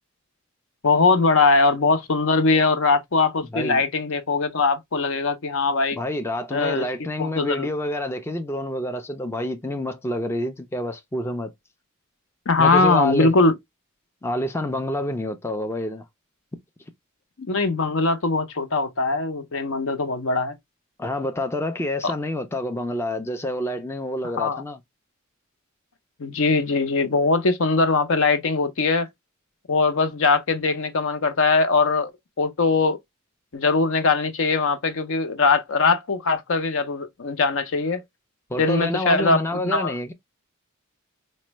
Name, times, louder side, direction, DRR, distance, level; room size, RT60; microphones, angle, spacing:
voice 1, 0.8-6.0 6.5-6.9 7.2-7.7 12.5-13.5 17.4-20.5 22.0-22.1 24.4-24.6 26.2-29.1 29.7-32.1 32.4-33.0 33.5-38.0 38.6-39.9, left 3 dB, 65° left, 0.7 m, -21 dB
voice 2, 5.9-11.5 12.6-13.3 14.2-16.0 21.0-24.8 38.5-40.1, left 1 dB, 10° left, 0.4 m, -28 dB
4.2 x 2.1 x 3.0 m
head